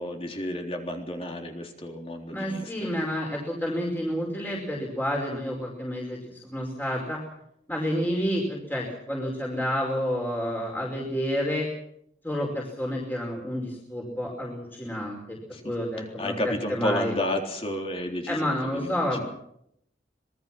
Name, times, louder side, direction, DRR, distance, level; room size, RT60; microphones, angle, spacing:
voice 1, 0.0-3.0 15.5-15.7 16.2-19.2, left 1 dB, 30° left, 3 dB, 3.7 m, -32 dB
voice 2, 2.3-7.2 7.7-11.7 12.2-15.4 15.6-17.1 18.3-19.2, equal, 10° left, -2 dB, 5.1 m, -29 dB
26.0 x 21.0 x 6.1 m, 0.73 s
head